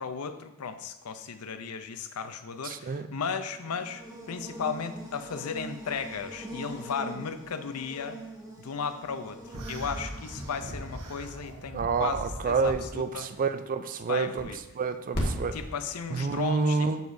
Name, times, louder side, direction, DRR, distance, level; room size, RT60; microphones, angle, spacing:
voice 1, 0.0-8.2 8.6-9.4 9.7-13.3 14.1-14.6 15.5-16.9, left 6 dB, 75° left, 10 dB, 0.5 m, -35 dB
voice 2, 2.6-3.1 11.7-14.5 14.8-15.6 16.1-17.0, right 5 dB, 40° right, 10 dB, 0.4 m, -28 dB
Buzz, 3.4-11.6, right 2 dB, 15° right, 1.2 m, -44 dB
sound 1, 9.5-12.9, right 1 dB, 85° right, 1.2 m, -40 dB
sound 2, 11.4-16.1, equal, 45° left, 1.6 m, -38 dB
7.9 x 6.9 x 2.7 m, 0.96 s
head